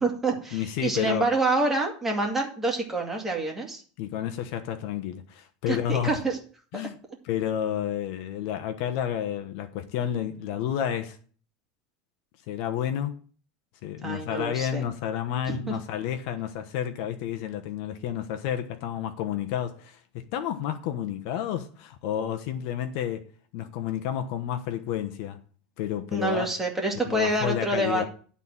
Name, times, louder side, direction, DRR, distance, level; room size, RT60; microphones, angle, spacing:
voice 1, 0.0-3.8 5.7-6.4 14.0-14.8 15.5-15.7 26.1-28.1, right 2 dB, 10° right, 2.2 m, -27 dB
voice 2, 0.5-1.2 4.0-6.2 6.7-7.0 7.2-11.2 12.5-13.2 13.8-23.3 23.5-25.4 25.8-26.5 27.1-28.0, left 10 dB, 60° left, 1.1 m, -30 dB
11.5 x 4.2 x 7.3 m
supercardioid pair, 155°, 3 cm